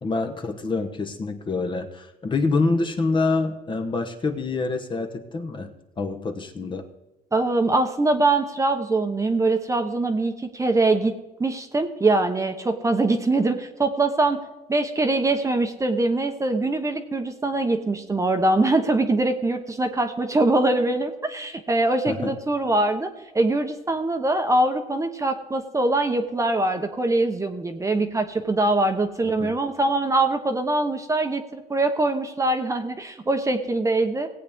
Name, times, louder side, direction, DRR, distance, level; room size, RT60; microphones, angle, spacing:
voice 1, 0.0-6.8 22.1-22.3 29.2-29.6, left 3 dB, 30° left, 5 dB, 1.1 m, -26 dB
voice 2, 7.3-11.1 11.4-14.4 14.7-34.3, right 2 dB, 20° right, 6 dB, 1.0 m, -23 dB
18.0 x 8.5 x 3.6 m, 1.0 s
cardioid pair, 110°, 17 cm